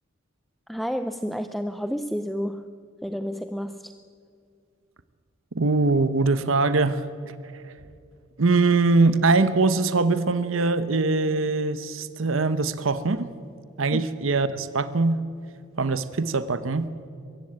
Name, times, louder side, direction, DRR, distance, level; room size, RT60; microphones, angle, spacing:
voice 1, 0.7-2.7 3.0-3.9 13.9-14.0, equal, ahead, 9 dB, 0.5 m, -30 dB
voice 2, 5.5-7.0 7.4-7.7 8.4-13.3 13.8-15.3 15.8-16.9, right 3 dB, 85° right, 13 dB, 0.9 m, -22 dB
22.5 x 15.5 x 8.9 m, 2.3 s
head